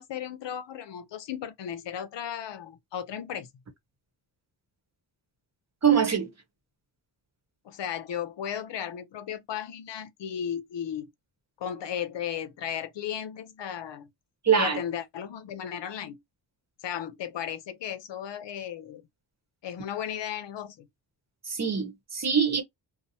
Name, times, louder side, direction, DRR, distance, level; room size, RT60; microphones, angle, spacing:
voice 1, 0.0-3.5 7.6-11.1 11.6-14.1 14.5-16.2 16.8-19.1 19.6-20.9, left 9 dB, 70° left, 0.7 m, -35 dB
voice 2, 5.8-6.3 14.4-14.8 21.5-22.6, right 7 dB, 35° right, 0.9 m, -23 dB
2.8 x 2.0 x 2.6 m
wide cardioid pair, 115°, 46 cm